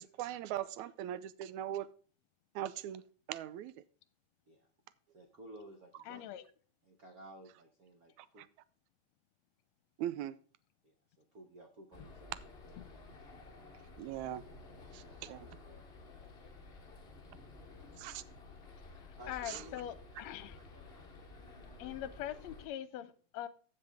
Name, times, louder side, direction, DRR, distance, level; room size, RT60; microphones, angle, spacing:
voice 1, 0.0-1.9 2.6-3.0 3.3-3.7 8.2-8.3 10.0-10.4 14.0-14.4 14.9-15.5 18.0-18.2 19.5-19.6, right 12 dB, 85° right, 2.0 m, -40 dB
voice 2, 5.1-6.3 6.8-8.4 10.8-12.4 12.6-13.0 15.0-15.8 19.2-19.9, right 1 dB, 70° right, 0.8 m, -55 dB
voice 3, 6.1-6.5 19.0-20.6 21.8-23.5, left 12 dB, 75° left, 1.8 m, -43 dB
sound 1, 11.9-22.7, left 3 dB, 55° left, 0.6 m, -53 dB
14.5 x 5.5 x 3.5 m
omnidirectional pair, 3.3 m